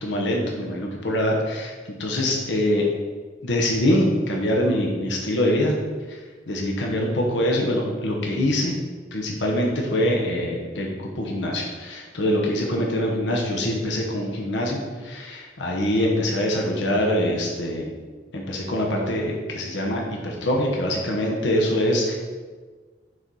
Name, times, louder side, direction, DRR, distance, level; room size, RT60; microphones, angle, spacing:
voice 1, 0.0-2.8 3.4-5.8 6.1-6.2 6.5-8.7 9.1-17.9 18.3-22.2, left 1 dB, 85° left, -1 dB, 1.1 m, -24 dB
6.5 x 4.2 x 4.7 m, 1.4 s
head